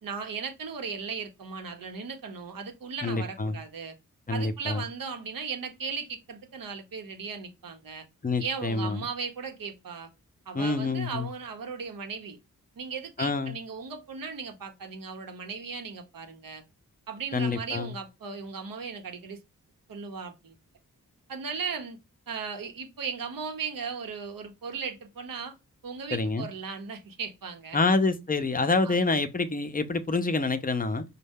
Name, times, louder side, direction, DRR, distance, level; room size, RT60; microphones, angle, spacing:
voice 1, 0.0-3.9 4.3-8.0 8.4-10.1 10.5-12.4 12.8-16.6 17.1-19.4 19.9-20.5 21.3-22.0 22.3-25.6 25.8-27.9 28.8-29.0, right 5 dB, 80° right, 0.8 m, -37 dB
voice 2, 3.0-3.6 4.3-4.8 8.2-9.1 10.5-11.3 13.2-13.6 17.3-17.9 26.1-26.5 27.7-31.0, left 3 dB, 25° left, 0.5 m, -27 dB
5.2 x 2.1 x 3.5 m
cardioid pair, 65°, 34 cm